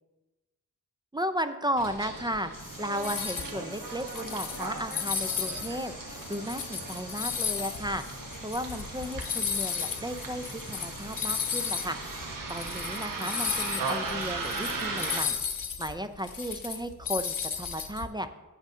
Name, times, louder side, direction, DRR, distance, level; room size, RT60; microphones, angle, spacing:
voice 1, 1.1-2.5 2.8-8.0 8.4-12.0 12.5-15.4 15.8-18.3, equal, 15° right, 9 dB, 0.4 m, -34 dB
Bus, 1.8-15.2, right 3 dB, 80° right, 1.4 m, -38 dB
sound 1, 2.5-12.4, left 2 dB, 50° left, 2.7 m, -48 dB
sound 2, 3.0-3.5 4.0-5.7 6.1-11.9 12.2-12.3 12.5-18.1, left 7 dB, 80° left, 1.0 m, -34 dB
8.7 x 6.2 x 5.5 m, 1.1 s
wide cardioid pair, 120°, 33 cm